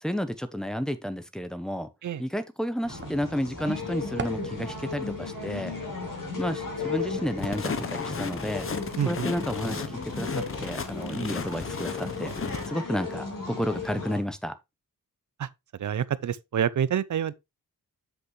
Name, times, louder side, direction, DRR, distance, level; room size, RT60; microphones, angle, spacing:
voice 1, 0.0-1.9 2.2-5.7 6.4-8.7 9.1-12.3 12.7-14.5, equal, ahead, 0.8 m, -31 dB
sound 1, 2.8-14.2, left 4 dB, 65° left, 4.1 m, -35 dB
sound 2, 2.8-10.8, right 5 dB, 35° right, 0.9 m, -43 dB
sound 3, 7.4-12.7, left 5 dB, 40° left, 0.9 m, -35 dB
voice 2, 9.0-9.3 15.4-15.5 15.8-17.3, right 9 dB, 60° right, 0.6 m, -27 dB
8.1 x 6.0 x 3.1 m
wide cardioid pair, 170°, 35 cm